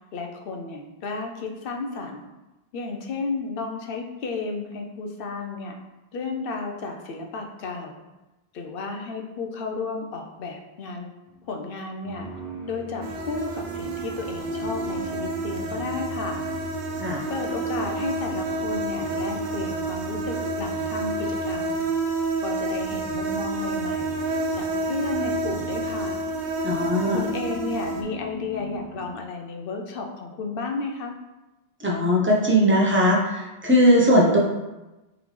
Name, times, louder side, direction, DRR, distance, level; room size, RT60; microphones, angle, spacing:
voice 1, 0.1-2.3 2.7-5.8 6.1-8.0 8.5-11.1 11.5-12.3 12.7-16.4 17.3-21.8 22.4-24.2 24.5-26.2 27.1-31.2, left 3 dB, 65° left, 3 dB, 0.7 m, -33 dB
sound 1, 11.3-11.6 12.0-22.0 22.6-29.2, equal, 10° left, 1.3 m, -39 dB
sound 2, 13.0-28.0, right 2 dB, 55° right, 0.6 m, -29 dB
voice 2, 26.6-27.2 31.8-34.4, equal, 15° right, -3 dB, 0.6 m, -19 dB
3.8 x 3.4 x 3.2 m, 1.0 s
omnidirectional pair, 1.1 m